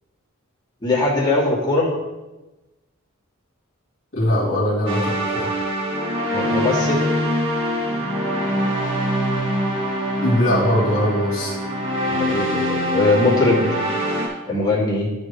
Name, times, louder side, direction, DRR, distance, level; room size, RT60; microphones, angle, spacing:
voice 1, 0.8-1.9 6.3-7.1 12.1-13.8 14.5-15.1, left 2 dB, 20° left, -6 dB, 2.5 m, -20 dB
voice 2, 4.1-5.5 10.2-11.5, left 1 dB, 60° left, -7 dB, 2.6 m, -21 dB
sound 1, 4.9-14.3, equal, 65° right, 1.9 m, -23 dB
12.5 x 5.1 x 3.2 m, 1.1 s
head